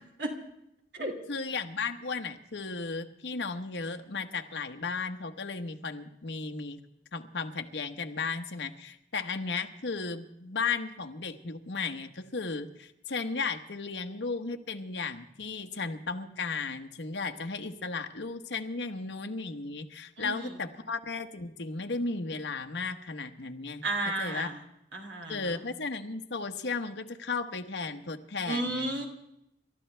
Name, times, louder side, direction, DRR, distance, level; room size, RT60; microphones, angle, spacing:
voice 1, 1.3-6.8 7.1-23.8 24.2-24.5 25.3-28.9, left 4 dB, 85° left, 6 dB, 1.1 m, -35 dB
voice 2, 20.2-20.5 23.8-24.6 24.9-25.6 28.5-29.1, right 2 dB, 75° right, 4 dB, 2.7 m, -33 dB
28.0 x 13.0 x 3.4 m, 0.81 s
head